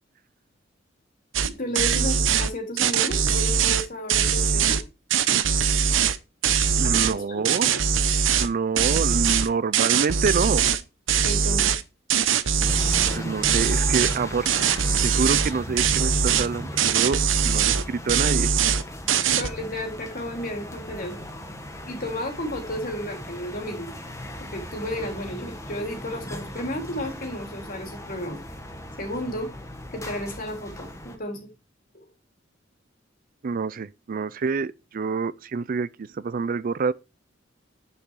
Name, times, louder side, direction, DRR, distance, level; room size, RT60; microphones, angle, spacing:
sound 1, 1.3-1.5 1.7-2.5 2.8-4.8 5.1-6.2 6.4-7.1 7.4-8.5 8.8-10.8 11.1-11.8 12.1-13.2 13.4-14.2 14.5-15.5 15.8-16.5 16.8-17.8 18.1-18.8 19.1-19.5, right 7 dB, 85° right, 0.8 m, -22 dB
voice 1, 1.4-4.8 6.8-7.4 11.2-11.7 19.4-21.3 21.9-23.9 24.4-28.4 29.0-29.5 29.9-31.4 31.9-32.1, left 1 dB, 45° left, 3.4 m, -33 dB
voice 2, 6.8-7.7 8.4-10.6 13.1-14.8 15.0-17.2 17.4-18.5 33.4-36.9, right 5 dB, 45° right, 0.4 m, -27 dB
sound 2, 12.6-31.2, left 1 dB, 15° left, 1.6 m, -37 dB
9.7 x 6.8 x 4.7 m
head